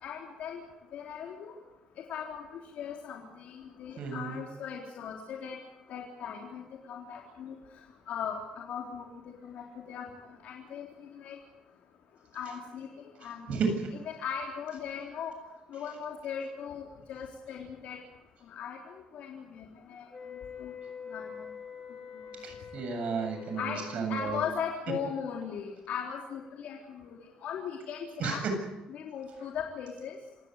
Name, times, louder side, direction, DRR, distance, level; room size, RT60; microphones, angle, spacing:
voice 1, 0.0-0.6 0.9-1.5 2.1-5.6 5.9-7.6 8.1-9.1 9.4-11.4 12.3-13.7 14.1-15.3 15.7-18.0 18.5-20.7 21.1-21.5 22.1-22.2 23.6-23.8 24.1-28.5 28.9-30.2, left 7 dB, 65° left, 0 dB, 3.8 m, -39 dB
voice 2, 4.0-4.4 13.5-13.8 22.4-24.4 28.2-28.4, right 5 dB, 60° right, 5 dB, 7.6 m, -33 dB
sound 1, 20.1-24.0, left 7 dB, 30° left, 4.6 m, -44 dB
26.5 x 17.0 x 8.2 m, 0.96 s
cardioid pair, 125°, 3 cm